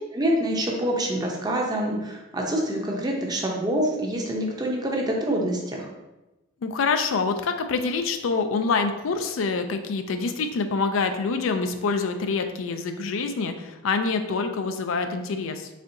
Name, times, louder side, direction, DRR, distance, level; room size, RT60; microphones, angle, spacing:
voice 1, 0.1-5.9, right 1 dB, 20° right, 0 dB, 0.6 m, -26 dB
voice 2, 6.6-15.7, left 4 dB, 85° left, 7 dB, 0.4 m, -26 dB
4.2 x 3.5 x 2.6 m, 1.0 s
head